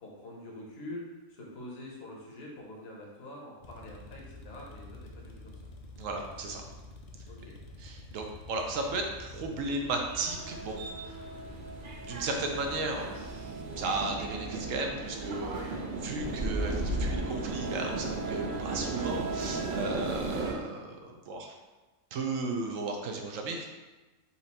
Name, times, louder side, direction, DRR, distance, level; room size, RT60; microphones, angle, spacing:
voice 1, 0.0-5.5 7.3-7.6, left 1 dB, 55° left, -2 dB, 1.1 m, -45 dB
sound 1, 3.6-14.9, left 2 dB, 85° left, 0.3 m, -49 dB
voice 2, 6.0-6.6 7.8-11.2 12.0-13.5 13.8-21.5 22.1-23.7, right 3 dB, 75° right, 2 dB, 1.0 m, -35 dB
sound 2, 10.1-20.5, right 2 dB, 60° right, 0.5 m, -35 dB
4.3 x 2.6 x 4.1 m, 1.2 s
omnidirectional pair, 1.4 m